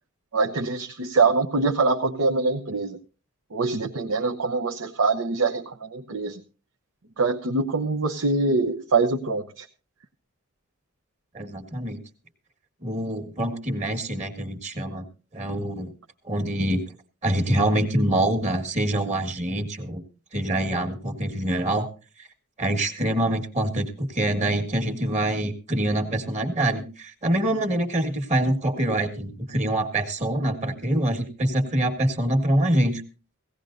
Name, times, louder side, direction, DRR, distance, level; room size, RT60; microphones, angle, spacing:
voice 1, 0.3-3.0 3.5-6.4 7.2-9.7, right 3 dB, 75° right, 3 dB, 0.9 m, -24 dB
voice 2, 11.3-12.0 12.8-15.0 15.3-15.9 16.3-16.8 17.2-20.0 20.3-21.9 22.2-22.3 22.6-33.0, right 1 dB, 35° right, 6 dB, 1.7 m, -25 dB
17.0 x 17.0 x 2.6 m, 0.34 s
head